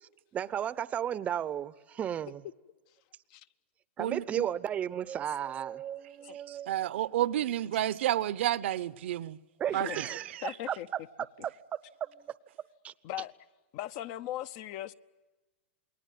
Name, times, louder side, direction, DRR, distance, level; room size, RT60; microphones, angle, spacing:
voice 1, 0.0-2.4 4.0-6.7 9.6-10.3 10.7-11.0 12.8-12.9, right 10 dB, 20° right, 0.8 m, -34 dB
voice 2, 4.0-4.5 6.5-9.4 9.7-10.4, right 13 dB, 60° right, 0.9 m, -31 dB
voice 3, 9.7-10.0 10.4-10.9 13.0-13.3 13.7-14.9, left 13 dB, 40° left, 0.8 m, -38 dB
29.0 x 21.0 x 9.4 m
hypercardioid pair, 145°, 7 cm